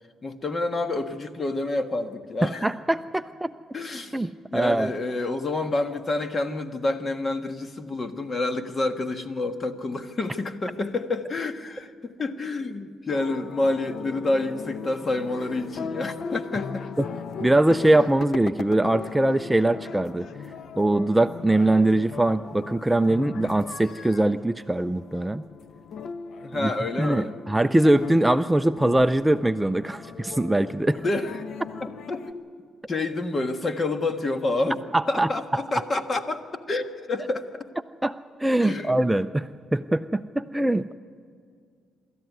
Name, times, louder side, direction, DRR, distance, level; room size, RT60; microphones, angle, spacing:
voice 1, 0.2-2.7 3.7-16.9 26.4-27.4 31.0-31.4 31.8-32.4 32.9-34.8 35.1-37.7 38.6-39.0, left 2 dB, 35° left, 8 dB, 1.5 m, -28 dB
voice 2, 2.4-3.5 4.1-4.9 17.4-20.3 20.8-25.4 26.6-26.7 27.0-31.0 34.9-35.3 38.0-41.0, right 1 dB, 10° right, 10 dB, 0.4 m, -22 dB
sound 1, 13.1-32.3, left 6 dB, 65° left, 0.9 m, -38 dB
24.5 x 13.5 x 9.5 m, 2.1 s
cardioid pair, 90°, 0 cm